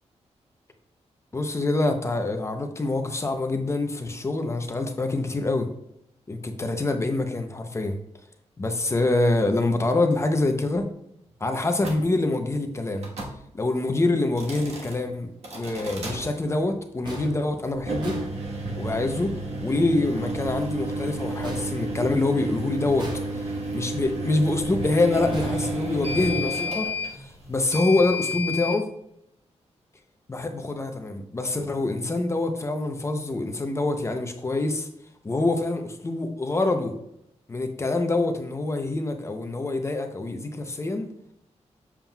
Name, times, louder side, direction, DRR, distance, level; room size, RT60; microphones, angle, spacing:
voice 1, 1.3-5.7 6.3-8.0 8.6-10.9 11.4-13.1 13.5-15.3 15.5-18.2 18.7-19.3 19.6-23.1 23.3-23.4 23.7-28.9 30.3-34.9 35.2-36.9 37.5-41.1, left 2 dB, 25° left, 5 dB, 0.6 m, -25 dB
sound 1, 11.8-12.0 13.0-13.4 14.3-15.0 15.4-16.2 17.7-28.8, equal, 65° right, 1.4 m, -31 dB
sound 2, 16.0-19.1 21.4-22.5 23.0-23.8 25.3-26.4, right 1 dB, 40° right, 1.3 m, -40 dB
7.3 x 7.2 x 2.3 m, 0.77 s
wide cardioid pair, 145°, 12 cm